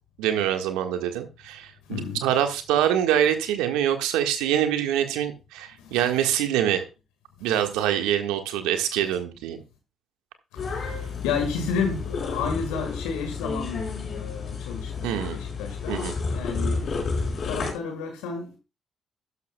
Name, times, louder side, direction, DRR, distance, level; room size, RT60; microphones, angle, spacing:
voice 1, 0.2-6.8 7.4-9.6 15.0-15.4 15.9-16.1, right 10 dB, 80° right, 1.5 m, -25 dB
voice 2, 1.9-2.3 5.8-6.0 7.8-7.9 9.0-9.1 10.5-16.0 16.3-18.6, left 5 dB, 80° left, 1.7 m, -32 dB
sound 1, 10.6-17.7, left 4 dB, 55° left, 5.0 m, -31 dB
12.5 x 12.0 x 2.2 m
hypercardioid pair, 45°, 0 cm